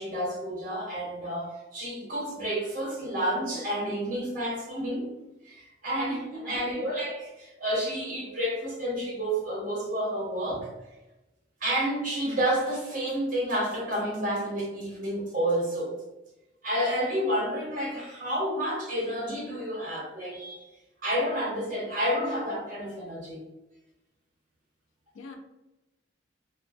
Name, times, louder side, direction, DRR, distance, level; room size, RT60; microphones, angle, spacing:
voice 1, 0.0-5.1 5.4-10.7 11.6-16.0 16.6-20.7 21.0-23.5, equal, 45° right, 0.8 m, -30 dB
voice 2, 6.4-6.9 25.1-25.4, left 3 dB, 80° left, 0.4 m, -42 dB
2.3 x 2.2 x 2.4 m
head